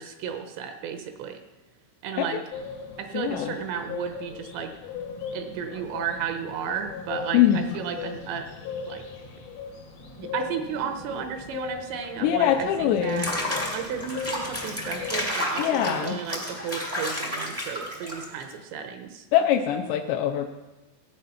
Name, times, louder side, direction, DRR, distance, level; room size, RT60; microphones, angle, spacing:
voice 1, 0.0-1.4 2.0-2.4 3.0-4.7 5.3-8.5 8.9-9.0 10.2-13.3 13.7-19.3, right 7 dB, 80° right, 6 dB, 2.8 m, -33 dB
sound 1, 2.5-15.3, left 5 dB, 65° left, 1.6 m, -38 dB
voice 2, 3.1-3.5 7.3-7.6 12.2-13.3 15.6-16.2 19.3-20.5, left 10 dB, 80° left, 4 dB, 2.6 m, -23 dB
Water / Bathtub (filling or washing), 13.0-18.5, left 1 dB, 20° left, 0.3 m, -31 dB
15.5 x 8.3 x 5.6 m, 1.1 s
omnidirectional pair, 5.5 m